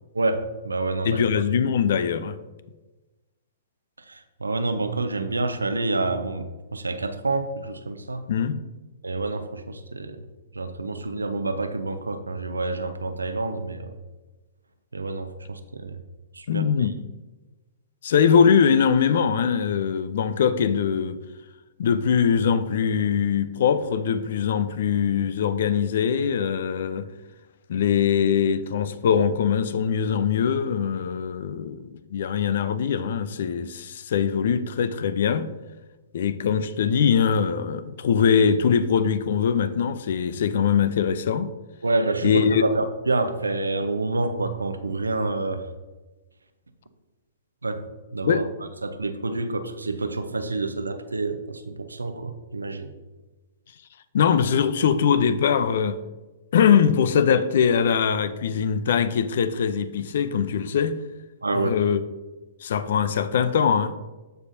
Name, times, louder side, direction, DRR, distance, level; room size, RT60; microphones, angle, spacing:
voice 1, 0.1-1.2 4.1-8.2 9.0-10.2 10.5-14.0 14.9-16.0 16.3-16.6 41.8-45.6 47.6-47.8 48.1-48.4 48.8-52.9 61.4-61.8, right 3 dB, 80° right, 0.7 m, -28 dB
voice 2, 1.0-2.4 8.3-8.6 16.5-17.1 18.0-21.2 21.8-27.1 27.7-35.5 36.1-41.5 42.2-42.6 48.2-48.4 54.1-56.0 56.5-60.9 61.5-62.0 62.6-63.9, left 7 dB, 55° left, 0.5 m, -22 dB
14.5 x 4.8 x 2.7 m
figure-of-eight pair, 115°, 0 cm